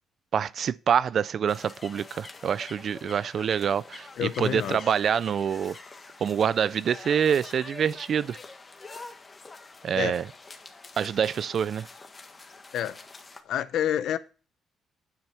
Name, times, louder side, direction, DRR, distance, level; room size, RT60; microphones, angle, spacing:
voice 1, 0.3-5.8 6.2-8.4 9.8-10.2 11.0-11.9, right 8 dB, 50° right, 0.4 m, -26 dB
sound 1, 1.5-13.4, left 3 dB, 25° left, 1.5 m, -46 dB
voice 2, 4.2-4.9 9.9-10.2 12.7-13.0 13.4-14.2, left 10 dB, 70° left, 0.8 m, -28 dB
9.7 x 7.4 x 5.8 m
cardioid pair, 120°, 0 cm